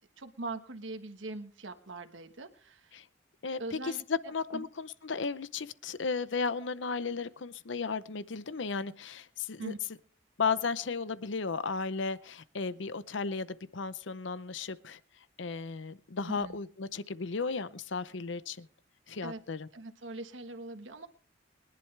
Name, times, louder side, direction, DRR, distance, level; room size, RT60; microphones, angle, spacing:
voice 1, 0.2-3.0 3.6-4.7 9.6-9.8 16.3-16.6 19.2-19.4 19.7-21.1, right 2 dB, 80° right, 6 dB, 1.4 m, -42 dB
voice 2, 3.4-9.7 10.4-15.0 15.4-18.7 19.1-19.7, left 4 dB, 75° left, 16 dB, 0.7 m, -35 dB
23.5 x 11.0 x 3.3 m, 0.43 s
head